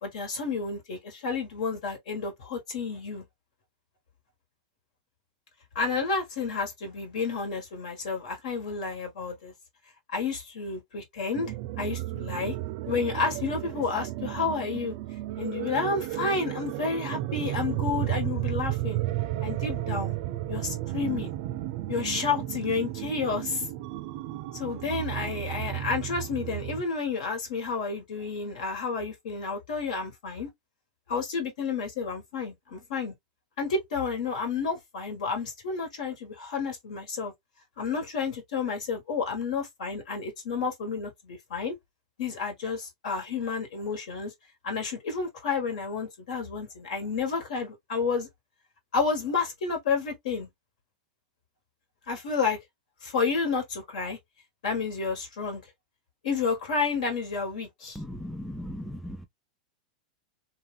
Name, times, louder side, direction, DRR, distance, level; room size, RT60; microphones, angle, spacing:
voice 1, 0.0-3.2 5.7-9.5 10.1-12.5 12.9-14.9 15.4-19.0 19.4-20.1 20.5-21.3 21.9-23.6 24.5-30.5 31.1-33.1 33.6-37.3 37.8-41.8 42.2-44.3 44.6-48.3 48.9-50.5 52.1-52.6 53.0-54.2 54.6-55.6 56.2-58.0, left 4 dB, 75° left, 1.7 m, -30 dB
sound 1, 11.3-26.8, right 15 dB, 55° right, 0.4 m, -33 dB
voice 2, 58.0-59.2, equal, ahead, 0.5 m, -37 dB
2.8 x 2.4 x 3.4 m
hypercardioid pair, 125°, 4 cm